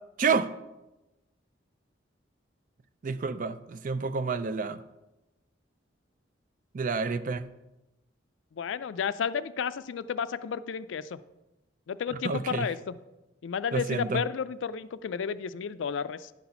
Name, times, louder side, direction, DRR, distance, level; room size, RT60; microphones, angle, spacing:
voice 1, 0.2-0.5 3.0-4.8 6.7-7.5 12.2-12.7 13.7-14.2, right 4 dB, 45° right, 13 dB, 0.4 m, -29 dB
voice 2, 8.5-11.2 11.9-12.9 13.4-16.3, left 7 dB, 80° left, 15 dB, 0.4 m, -32 dB
10.5 x 4.1 x 5.7 m, 0.99 s
head